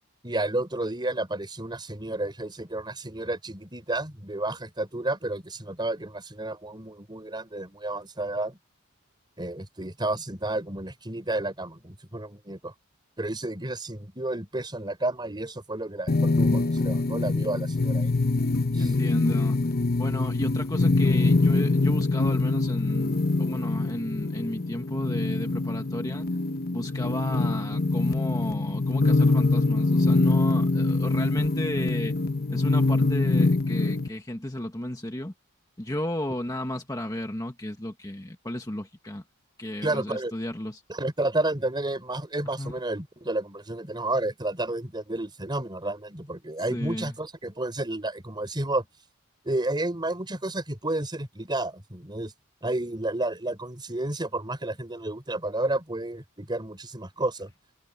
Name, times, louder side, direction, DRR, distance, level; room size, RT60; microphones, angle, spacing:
voice 1, 0.2-8.6 9.4-12.7 13.2-18.1 18.7-18.9 39.8-40.3 40.9-48.9 49.4-52.3 52.6-57.5, right 2 dB, 20° right, 4.2 m, -31 dB
sound 1, 16.1-34.1, left 3 dB, 45° left, 0.9 m, -24 dB
voice 2, 18.8-19.6 20.0-26.3 26.7-32.1 32.5-35.3 35.8-39.2 39.6-40.8 42.6-42.7 46.7-47.1, left 1 dB, 15° left, 1.4 m, -33 dB
head